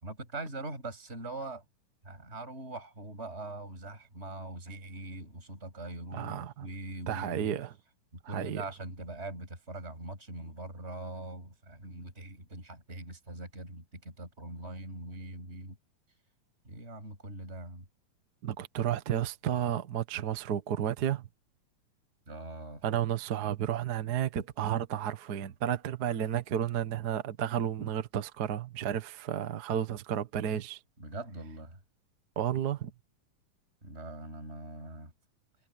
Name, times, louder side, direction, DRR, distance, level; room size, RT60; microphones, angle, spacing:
voice 1, 0.0-1.6 2.0-7.5 8.3-15.8 16.7-17.8 22.3-22.8 31.0-31.8 33.8-35.1, right 2 dB, 20° right, 7.8 m, -42 dB
voice 2, 6.1-6.7 7.1-7.7 8.2-8.6 18.4-21.3 22.8-30.8 32.4-32.9, right 9 dB, 55° right, 1.1 m, -32 dB
omnidirectional pair, 3.6 m